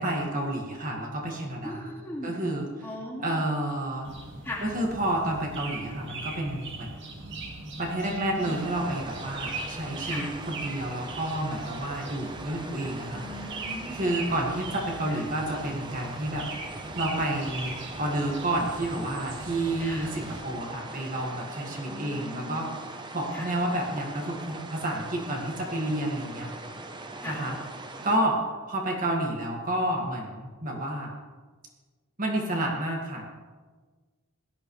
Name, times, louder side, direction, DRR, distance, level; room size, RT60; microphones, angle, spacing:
voice 1, 0.0-1.8 2.2-2.6 3.2-4.1 4.6-7.0 7.8-13.2 13.9-22.7 23.1-26.5 27.3-27.6 28.0-28.4 28.7-31.1 32.2-33.3, right 1 dB, 40° right, 0 dB, 1.9 m, -30 dB
voice 2, 1.6-2.4 2.8-3.5 4.4-4.7 8.0-8.6 10.1-10.3 13.1-14.2 15.1-15.2 19.8-20.1 21.9-22.6 23.3-23.5 27.2-27.5, left 1 dB, 10° left, -4 dB, 2.2 m, -39 dB
sound 1, 4.0-20.4, right 3 dB, 60° right, 1.9 m, -40 dB
sound 2, 8.4-28.2, right 2 dB, 20° right, 0.8 m, -41 dB
17.5 x 12.5 x 3.2 m, 1.4 s
head